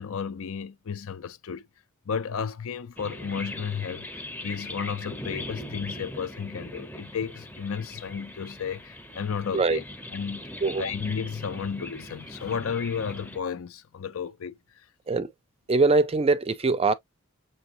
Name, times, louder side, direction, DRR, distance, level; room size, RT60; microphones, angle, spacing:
voice 1, 0.0-1.6 2.1-9.8 10.1-10.5 10.8-14.5, left 6 dB, 70° left, 0.5 m, -33 dB
sound 1, 3.0-13.4, left 1 dB, 5° left, 0.7 m, -40 dB
voice 2, 15.7-16.9, right 3 dB, 25° right, 0.4 m, -22 dB
6.8 x 2.7 x 2.7 m
head